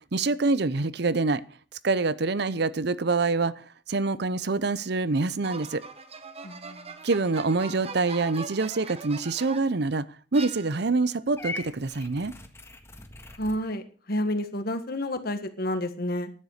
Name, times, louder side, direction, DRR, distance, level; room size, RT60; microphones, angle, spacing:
voice 1, 0.1-1.4 1.8-3.5 3.9-5.8 7.0-10.1 10.3-12.3, right 3 dB, 65° right, 17 dB, 0.7 m, -25 dB
sound 1, 5.4-9.8 10.3-11.1, right 4 dB, 35° right, 1.2 m, -41 dB
voice 2, 6.4-6.9 13.4-16.3, left 1 dB, 60° left, 9 dB, 1.7 m, -30 dB
Purr / Meow, 11.4-13.6, left 3 dB, 15° left, 1.6 m, -40 dB
12.0 x 10.0 x 6.6 m, 0.40 s
head